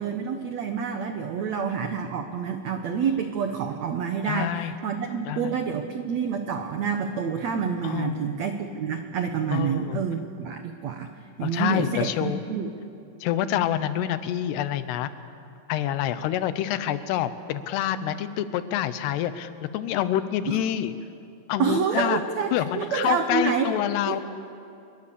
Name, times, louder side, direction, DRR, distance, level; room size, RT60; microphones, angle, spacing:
voice 1, 0.0-11.1 11.4-12.7 20.5-20.6 21.6-23.7 24.0-24.2, right 6 dB, 85° right, 6 dB, 1.5 m, -28 dB
voice 2, 4.3-4.7 5.3-5.6 7.8-8.4 9.5-10.0 11.4-12.4 13.2-15.1 15.7-20.9 21.5-22.2 22.5-24.2, left 11 dB, 80° left, 12 dB, 2.9 m, -27 dB
27.5 x 23.0 x 6.9 m, 2.5 s
omnidirectional pair, 4.8 m